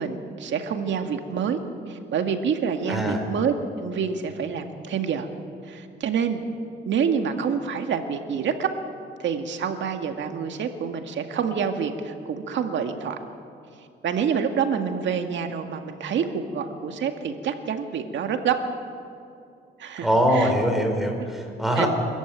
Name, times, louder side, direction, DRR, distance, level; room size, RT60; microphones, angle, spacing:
voice 1, 0.0-1.6 1.9-3.5 3.8-5.3 5.6-6.5 6.9-8.7 9.2-13.2 14.0-18.6 19.8-20.1 20.3-20.5 21.2-21.3 21.8-21.9, right 7 dB, 70° right, 6 dB, 2.0 m, -27 dB
voice 2, 2.9-3.2 20.0-21.9, equal, ahead, 2 dB, 5.1 m, -22 dB
25.5 x 14.0 x 9.4 m, 2.5 s
cardioid pair, 90°, 20 cm